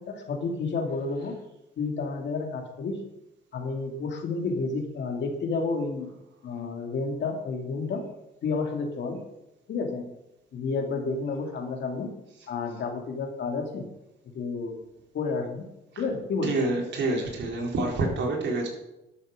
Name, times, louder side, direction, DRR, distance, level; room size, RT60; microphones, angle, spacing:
voice 1, 0.0-1.4 1.8-3.0 3.5-6.1 6.4-8.1 8.4-9.3 9.7-10.2 10.5-12.2 12.5-13.9 14.2-14.8 15.1-15.7 16.0-16.6, left 4 dB, 65° left, 4 dB, 2.6 m, -30 dB
voice 2, 16.4-18.7, right 2 dB, 65° right, 0 dB, 4.1 m, -27 dB
12.0 x 7.4 x 6.5 m, 0.90 s
cardioid pair, 90°, 20 cm